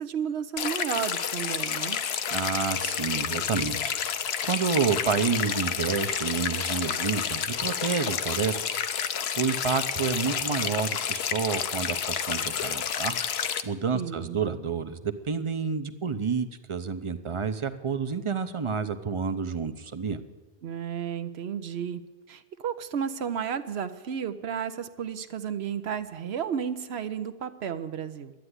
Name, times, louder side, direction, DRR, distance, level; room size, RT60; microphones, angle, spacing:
voice 1, 0.0-2.0 13.9-14.4 20.6-22.0 22.3-28.3, right 8 dB, 70° right, 10 dB, 1.0 m, -32 dB
sound 1, 0.6-13.6, left 8 dB, 70° left, 1.0 m, -30 dB
voice 2, 2.3-20.2, right 5 dB, 35° right, 10 dB, 0.7 m, -29 dB
12.0 x 9.0 x 9.6 m, 1.2 s
omnidirectional pair, 1.1 m